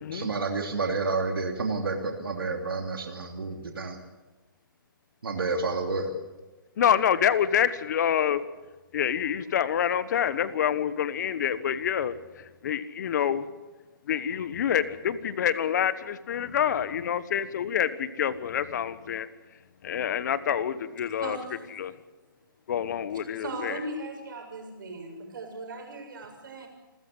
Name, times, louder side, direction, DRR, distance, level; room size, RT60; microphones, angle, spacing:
voice 1, 0.1-4.0 5.2-6.1, right 3 dB, 80° right, 3 dB, 3.0 m, -29 dB
voice 2, 6.8-8.4 8.9-13.5 14.1-19.3 19.8-21.4 21.8-21.9 22.7-23.8, left 9 dB, 50° left, 15 dB, 1.4 m, -27 dB
voice 3, 21.2-21.7 23.1-26.7, right 2 dB, 65° right, 4 dB, 7.4 m, -38 dB
28.5 x 14.0 x 8.0 m, 1.2 s
hypercardioid pair, 145°, 12 cm